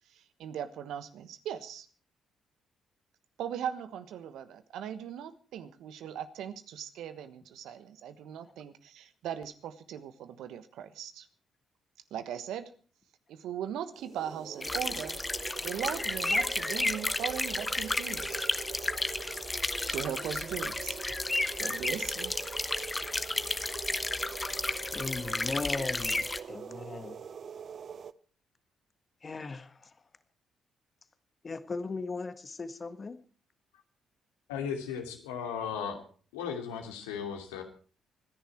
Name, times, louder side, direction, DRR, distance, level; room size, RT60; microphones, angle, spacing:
voice 1, 0.1-1.9 3.4-11.3 12.1-12.7 13.3-15.2 15.6-18.5 19.9-21.0 21.6-22.3, right 9 dB, 70° right, 12 dB, 1.3 m, -39 dB
sound 1, 13.9-28.1, right 7 dB, 55° right, 0.7 m, -44 dB
sound 2, 14.6-26.4, left 2 dB, 20° left, 1.2 m, -32 dB
voice 2, 24.9-27.1 29.2-29.9 31.4-33.2, left 4 dB, 40° left, 11 dB, 1.6 m, -38 dB
voice 3, 34.5-36.0 36.3-37.6, left 7 dB, 85° left, 3 dB, 2.6 m, -36 dB
25.0 x 10.5 x 4.5 m, 0.41 s
hypercardioid pair, 45°, 0 cm